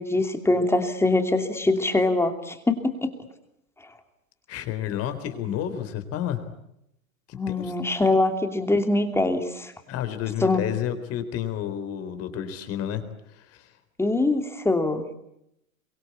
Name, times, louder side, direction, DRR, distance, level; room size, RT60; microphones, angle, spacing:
voice 1, 0.0-3.1 7.3-9.7 10.4-10.6 14.0-15.0, left 2 dB, 5° left, 7 dB, 2.8 m, -23 dB
voice 2, 4.5-6.4 7.3-7.7 9.9-13.0 13.3-13.6, left 10 dB, 35° left, 9 dB, 4.0 m, -30 dB
27.0 x 24.0 x 8.5 m, 0.80 s
hypercardioid pair, 120°, 41 cm